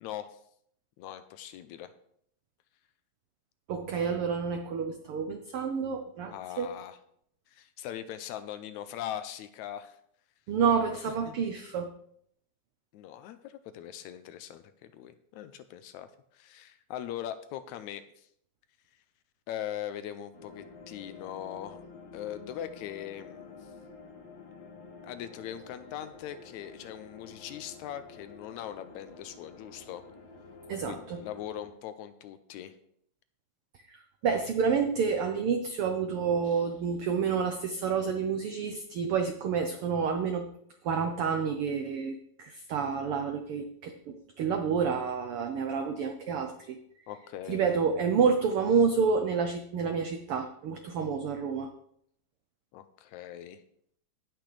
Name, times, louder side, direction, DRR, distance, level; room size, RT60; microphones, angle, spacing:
voice 1, 0.0-0.4 1.0-1.9 6.3-7.0 7.5-10.0 11.3-11.4 12.9-18.3 19.5-21.8 22.1-23.6 25.0-30.0 30.8-32.7 47.1-47.7 52.7-53.6, left 11 dB, 80° left, 11 dB, 1.9 m, -41 dB
voice 2, 3.7-6.7 10.5-11.9 30.7-31.2 33.9-40.5 40.8-46.8 47.5-51.7, right 6 dB, 85° right, 6 dB, 1.2 m, -29 dB
sound 1, 20.3-31.7, left 4 dB, 60° left, 2.6 m, -49 dB
17.5 x 6.0 x 3.3 m, 0.68 s
omnidirectional pair, 3.5 m